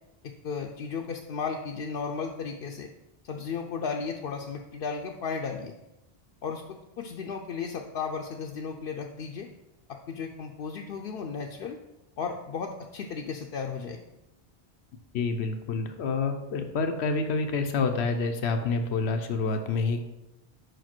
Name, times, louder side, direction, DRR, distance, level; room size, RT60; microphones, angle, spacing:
voice 1, 0.2-2.9 3.2-5.7 6.4-9.5 10.1-11.8 12.2-14.0, left 5 dB, 70° left, 2 dB, 0.8 m, -34 dB
voice 2, 15.1-20.0, left 4 dB, 90° left, 6 dB, 1.0 m, -28 dB
5.2 x 5.0 x 5.9 m, 0.95 s
omnidirectional pair, 1.1 m